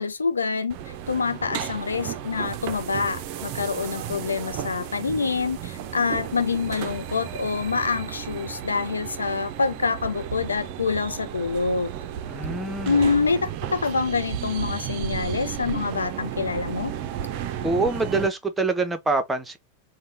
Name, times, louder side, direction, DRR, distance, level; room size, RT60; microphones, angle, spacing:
voice 1, 0.0-11.9 12.9-16.9, left 4 dB, 75° left, 0.4 m, -26 dB
sound 1, 0.7-18.3, right 10 dB, 45° right, 0.5 m, -33 dB
voice 2, 12.3-13.0 17.6-19.6, right 3 dB, 10° right, 0.8 m, -25 dB
4.0 x 2.2 x 3.3 m
figure-of-eight pair, 90°, 0 cm